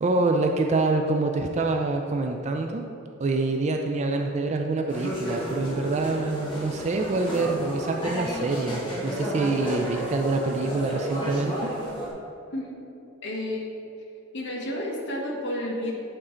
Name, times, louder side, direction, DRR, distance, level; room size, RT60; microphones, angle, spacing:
voice 1, 0.0-2.9 3.2-11.7, right 3 dB, 35° right, 4 dB, 0.3 m, -26 dB
sound 1, 4.9-12.1, equal, 25° left, 1.4 m, -32 dB
voice 2, 13.2-13.7 14.3-15.9, left 1 dB, 60° left, -1 dB, 1.2 m, -31 dB
8.7 x 3.7 x 4.3 m, 2.7 s
head